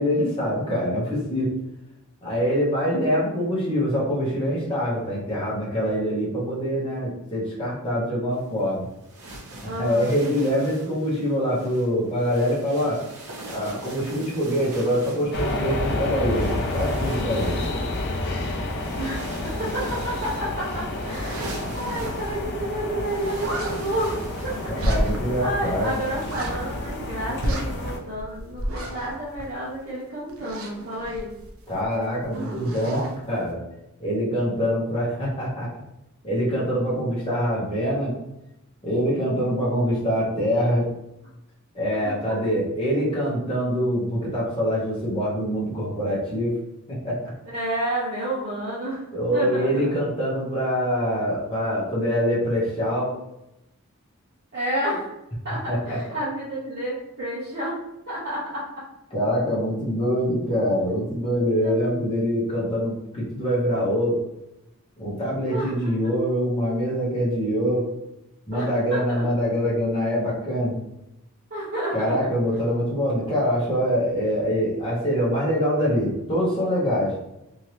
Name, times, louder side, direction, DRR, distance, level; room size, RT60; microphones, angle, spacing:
voice 1, 0.0-1.6 2.2-8.9 9.6-13.0 13.5-17.6 24.7-25.9 31.7-33.6 34.0-35.7 36.2-38.2 38.8-40.9 41.7-46.6 46.9-47.3 49.1-53.1 55.7-56.0 59.1-64.2 65.0-67.9 68.5-70.7 71.9-77.2, equal, 25° left, -7 dB, 1.0 m, -24 dB
sound 1, 8.3-26.8, right 1 dB, 85° right, 1.0 m, -42 dB
voice 2, 9.6-10.1 19.0-25.0 25.4-31.3 47.5-49.0 49.3-49.7 54.5-55.1 55.4-55.6 55.8-57.8 58.1-58.6 61.6-61.8 65.5-66.0 68.5-69.2 71.5-72.1, right 1 dB, 45° right, -10 dB, 0.9 m, -30 dB
sound 2, 15.3-28.0, left 2 dB, 50° left, 0.5 m, -30 dB
sound 3, 20.9-22.5 22.7-22.8 23.1-23.7 24.7-25.4 25.7-25.8 26.1-27.1 27.4-29.9 30.3-31.9 32.2-33.2, right 1 dB, 65° right, 0.6 m, -31 dB
2.8 x 2.7 x 3.1 m, 0.89 s
head